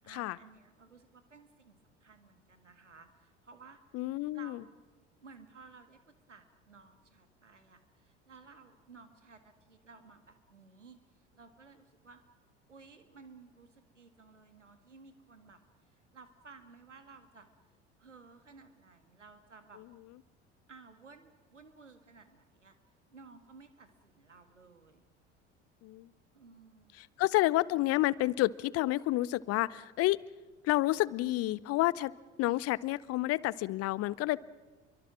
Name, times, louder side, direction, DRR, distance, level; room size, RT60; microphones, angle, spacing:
voice 1, 0.0-4.0 4.3-4.8 5.2-12.2 12.7-17.5 18.0-19.8 20.7-22.8 23.1-25.1 26.3-26.9, right 4 dB, 85° right, 9 dB, 1.8 m, -56 dB
voice 2, 3.9-4.6 25.8-26.1 27.0-30.2 30.6-32.1 32.4-34.4, left 17 dB, 45° left, 22 dB, 0.7 m, -29 dB
29.0 x 23.5 x 6.1 m, 1.3 s
figure-of-eight pair, 65°, 35 cm